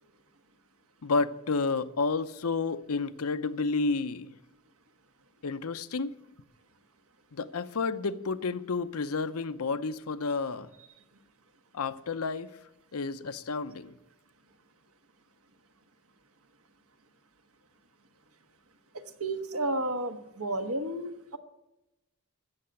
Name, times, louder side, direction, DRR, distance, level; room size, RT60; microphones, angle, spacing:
voice 1, 1.0-4.3 5.4-6.1 7.3-10.7 11.7-12.5 12.9-13.9, left 4 dB, 85° left, 0.7 m, -30 dB
voice 2, 19.2-21.4, right 1 dB, 80° right, 1.3 m, -32 dB
15.5 x 6.7 x 9.1 m
head